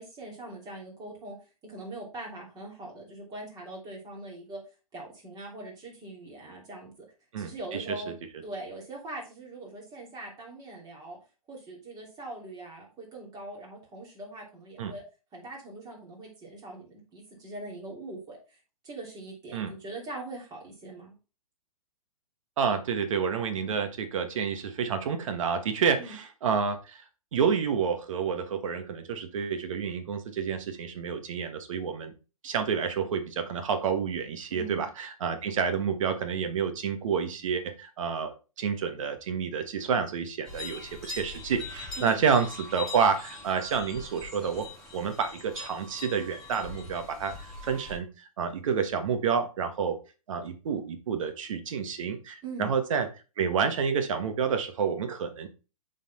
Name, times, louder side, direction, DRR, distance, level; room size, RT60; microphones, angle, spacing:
voice 1, 0.0-1.4 1.6-4.6 4.9-7.1 7.4-8.1 8.4-11.2 11.5-15.0 15.3-18.4 18.8-21.1 26.0-26.2 34.5-34.9 42.0-42.2 52.4-52.7, right 2 dB, 20° right, -2 dB, 3.0 m, -42 dB
voice 2, 7.3-7.8 14.8-14.9 19.5-19.7 22.6-27.0 27.3-32.1 32.4-44.6 44.9-50.0 50.3-53.1 53.4-55.5, right 6 dB, 60° right, 7 dB, 1.4 m, -29 dB
sound 1, 40.4-48.0, left 3 dB, ahead, 2.7 m, -42 dB
7.2 x 4.2 x 4.2 m, 0.33 s
hypercardioid pair, 125°, 19 cm